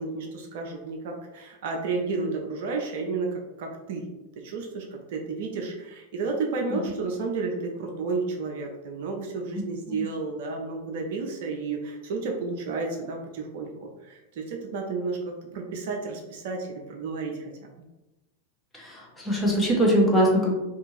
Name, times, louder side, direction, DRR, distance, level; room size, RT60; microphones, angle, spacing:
voice 1, 0.0-4.1 4.4-17.5, right 4 dB, 55° right, 1 dB, 0.4 m, -32 dB
voice 2, 9.5-10.1 18.7-20.6, equal, 10° left, -3 dB, 0.7 m, -23 dB
2.6 x 2.4 x 2.9 m, 1.0 s
figure-of-eight pair, 90°, 0 cm